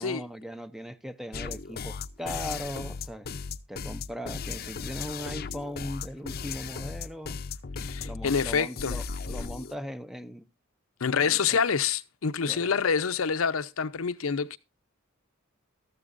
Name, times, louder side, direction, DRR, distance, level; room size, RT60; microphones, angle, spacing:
voice 1, 0.0-3.3 3.7-7.4 8.0-10.5 11.2-11.6 12.4-12.8, equal, ahead, 0.5 m, -39 dB
sound 1, 1.3-9.7, left 5 dB, 50° left, 0.6 m, -36 dB
voice 2, 7.8-9.0 11.0-14.6, left 6 dB, 90° left, 0.7 m, -27 dB
13.5 x 13.5 x 2.5 m
head